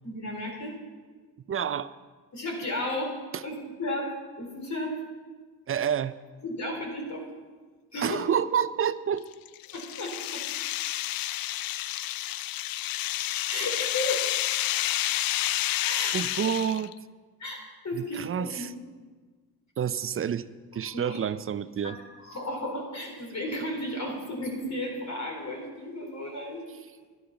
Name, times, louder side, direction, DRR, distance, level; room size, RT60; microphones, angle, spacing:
voice 1, 0.0-0.7 2.3-3.1 3.4-4.1 4.4-4.9 6.4-7.2 7.9-8.2 9.7-10.4 13.5-14.2 15.8-16.4 17.4-17.6 17.8-18.8 20.9-21.2 21.8-21.9 22.2-26.6, left 1 dB, 40° left, 1 dB, 4.0 m, -33 dB
voice 2, 1.5-1.9 3.3-3.4 5.7-6.1 8.0-9.2 16.1-16.9 17.9-18.7 19.8-20.4 20.7-22.0, right 8 dB, 30° right, 15 dB, 0.5 m, -28 dB
sound 1, 9.2-16.9, left 15 dB, 55° left, 0.5 m, -30 dB
11.5 x 9.5 x 5.9 m, 1.4 s
supercardioid pair, 65°, 43 cm